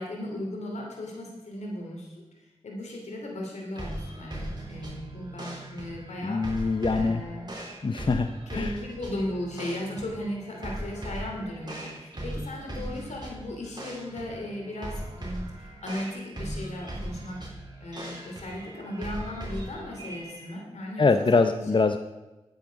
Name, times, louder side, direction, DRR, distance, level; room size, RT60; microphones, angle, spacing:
voice 1, 0.0-7.5 8.5-17.5 17.8-21.1 21.3-21.8, left 1 dB, 90° left, 0 dB, 2.9 m, -36 dB
sound 1, 3.7-20.5, right 1 dB, 40° right, 4.0 m, -39 dB
voice 2, 6.2-7.2 7.8-8.8 21.0-22.0, left 3 dB, 45° left, 8 dB, 0.7 m, -24 dB
10.5 x 9.2 x 5.1 m, 1.1 s
cardioid pair, 45°, 11 cm